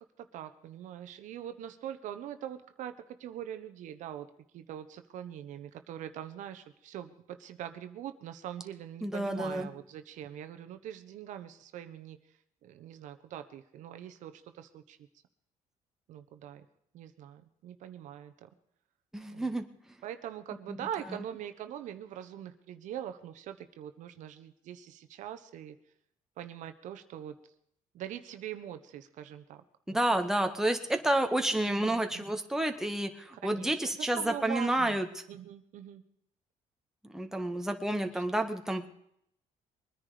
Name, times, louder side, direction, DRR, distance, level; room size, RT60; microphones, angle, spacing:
voice 1, 0.3-2.9 3.2-4.3 4.5-12.2 12.6-15.0 16.1-16.6 16.9-18.3 19.3-19.5 20.0-25.8 26.4-27.3 27.9-29.6 29.9-30.0 31.7-32.2 33.4-35.0 35.3-36.0 38.0-38.2, right 10 dB, 75° right, 9 dB, 1.2 m, -43 dB
voice 2, 9.0-9.7 19.1-19.6 20.7-20.8 29.9-35.1 37.1-38.9, right 1 dB, 5° right, 5 dB, 1.7 m, -30 dB
22.5 x 10.0 x 5.1 m, 0.71 s
cardioid pair, 115°, 13 cm